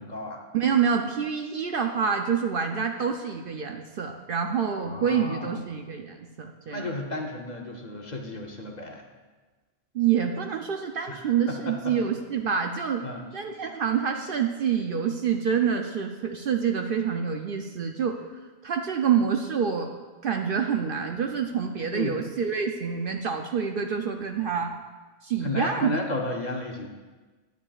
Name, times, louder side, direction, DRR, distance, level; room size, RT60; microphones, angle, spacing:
voice 1, 0.0-0.4 4.8-5.6 6.7-9.0 11.1-12.0 13.0-13.3 21.9-22.2 25.4-26.9, left 2 dB, 40° left, 1 dB, 0.8 m, -33 dB
voice 2, 0.5-6.9 9.9-13.0 13.3-18.2 18.6-19.9 20.2-24.7 25.2-26.0, right 7 dB, 60° right, 4 dB, 0.6 m, -27 dB
11.5 x 9.2 x 2.4 m, 1.3 s
omnidirectional pair, 1.2 m